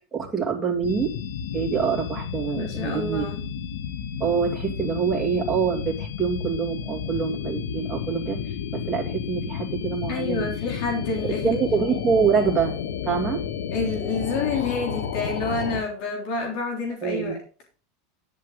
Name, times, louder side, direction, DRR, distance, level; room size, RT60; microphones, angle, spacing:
voice 1, 0.1-1.1 1.5-3.3 4.2-10.5 11.2-12.7 13.0-13.4 17.0-17.3, right 6 dB, 10° right, 2.6 m, -25 dB
sound 1, 0.8-15.8, left 7 dB, 85° left, 1.3 m, -32 dB
voice 2, 2.5-3.4 10.1-11.6 13.7-17.4, left 3 dB, 60° left, 3.4 m, -28 dB
10.5 x 8.5 x 3.9 m
supercardioid pair, 130°, 0 cm